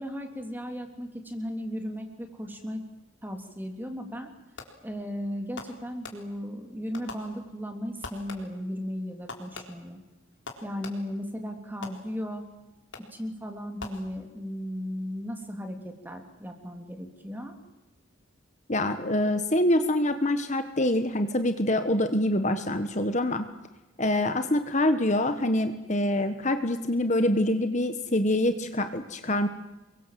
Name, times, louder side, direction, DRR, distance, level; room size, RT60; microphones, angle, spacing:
voice 1, 0.0-2.8 3.2-4.3 4.8-10.0 10.6-12.5 13.1-17.6, equal, 10° right, 4 dB, 3.4 m, -36 dB
Fireworks, 4.6-5.0 5.6-6.6 6.9-7.7 8.0-8.7 9.3-11.3 11.8-12.4 12.9-13.3 13.8-14.5, left 3 dB, 65° left, 4.2 m, -44 dB
voice 2, 18.7-23.5 24.0-29.5, left 1 dB, 35° left, 8 dB, 1.4 m, -25 dB
29.0 x 23.0 x 7.7 m, 1.0 s
head